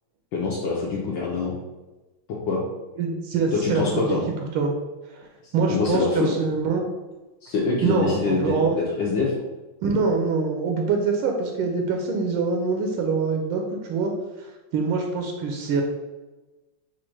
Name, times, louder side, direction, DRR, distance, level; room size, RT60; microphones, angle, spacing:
voice 1, 0.3-1.5 2.3-2.6 3.5-4.2 5.7-6.3 7.4-9.3, left 4 dB, 70° left, -5 dB, 1.3 m, -25 dB
voice 2, 3.0-4.1 4.5-4.7 5.1-5.3 5.5-6.8 7.8-8.7 9.8-14.1 14.7-15.8, right 4 dB, 80° right, 2 dB, 1.4 m, -24 dB
4.2 x 2.5 x 4.5 m, 1.1 s
omnidirectional pair, 2.3 m